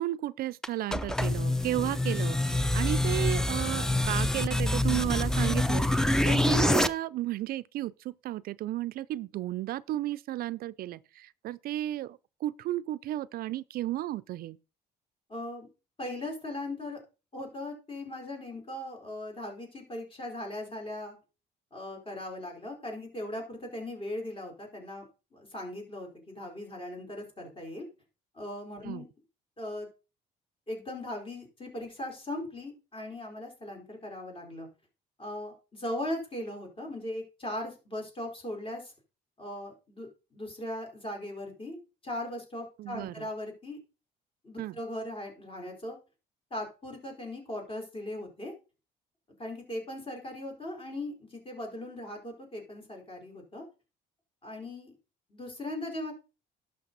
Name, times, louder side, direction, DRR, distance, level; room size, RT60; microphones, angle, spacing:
voice 1, 0.0-14.6 28.8-29.0 42.8-43.3 44.6-44.8, right 15 dB, 65° right, 0.4 m, -33 dB
sound 1, 0.6-6.9, left 1 dB, 5° left, 0.5 m, -26 dB
voice 2, 15.3-15.7 16.0-17.0 17.3-21.2 21.7-25.0 25.3-27.9 28.3-29.0 29.6-29.9 30.7-34.7 35.2-38.9 39.4-43.8 44.4-46.0 46.5-48.5 49.4-53.6 54.4-54.9 55.3-56.1, left 1 dB, 30° left, 4.3 m, -39 dB
11.5 x 6.6 x 4.0 m
cardioid pair, 110°, 17 cm